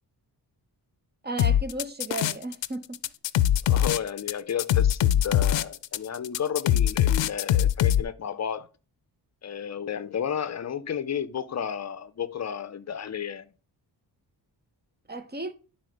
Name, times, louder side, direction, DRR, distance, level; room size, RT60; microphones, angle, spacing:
voice 1, 1.2-3.0 15.1-15.5, right 2 dB, 25° right, 0.7 m, -34 dB
sound 1, 1.4-2.7 2.9-8.0, left 11 dB, 90° left, 0.5 m, -22 dB
voice 2, 3.6-8.7 9.4-13.5, left 8 dB, 40° left, 0.6 m, -32 dB
11.0 x 4.3 x 5.1 m
wide cardioid pair, 145°, 43 cm